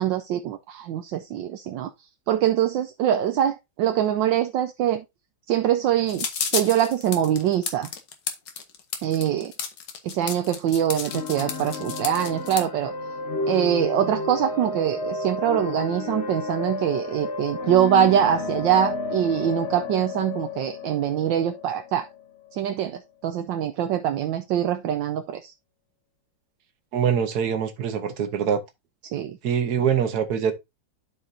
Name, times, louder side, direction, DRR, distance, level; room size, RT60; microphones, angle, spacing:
voice 1, 0.0-1.9 2.3-5.0 5.5-7.9 9.0-9.5 10.0-12.9 13.5-22.1 22.5-25.5 29.0-29.4, right 10 dB, 75° right, 1.3 m, -24 dB
sound 1, 6.1-12.6, left 6 dB, 60° left, 1.7 m, -31 dB
sound 2, 11.0-22.7, left 3 dB, 90° left, 0.5 m, -32 dB
voice 2, 26.9-28.6 29.4-30.5, right 8 dB, 55° right, 1.5 m, -24 dB
12.0 x 4.7 x 2.7 m
omnidirectional pair, 2.2 m